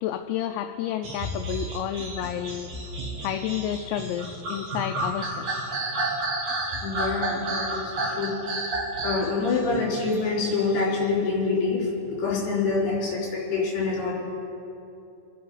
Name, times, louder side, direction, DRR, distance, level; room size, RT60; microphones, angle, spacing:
voice 1, 0.0-2.7 3.2-5.5, left 10 dB, 85° left, 6 dB, 2.8 m, -30 dB
sound 1, 1.0-11.1, right 2 dB, 45° right, 2.2 m, -31 dB
voice 2, 6.8-8.4 9.0-14.1, left 4 dB, 65° left, -6 dB, 5.8 m, -26 dB
26.5 x 9.6 x 4.0 m, 2.8 s
omnidirectional pair, 5.0 m